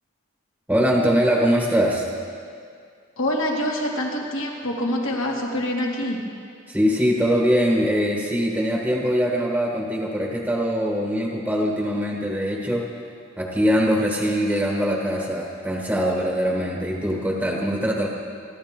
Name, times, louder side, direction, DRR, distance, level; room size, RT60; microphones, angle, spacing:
voice 1, 0.7-2.1 6.7-12.9 13.4-18.1, equal, 5° right, -2 dB, 1.3 m, -22 dB
voice 2, 3.2-6.2, left 1 dB, 75° left, -2 dB, 2.5 m, -25 dB
25.0 x 13.0 x 3.7 m, 2.2 s
head